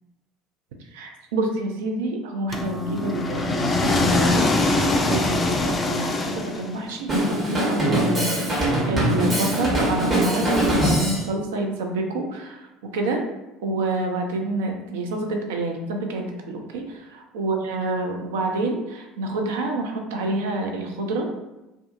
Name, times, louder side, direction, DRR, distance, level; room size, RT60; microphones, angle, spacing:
voice 1, 0.9-13.2 13.6-21.3, right 2 dB, 65° right, 3 dB, 0.3 m, -28 dB
sound 1, 2.5-6.9, left 2 dB, 25° left, 0.3 m, -23 dB
Drum kit, 7.1-11.3, equal, 30° right, 1.0 m, -22 dB
2.4 x 2.4 x 2.4 m, 0.97 s
figure-of-eight pair, 65°, 0 cm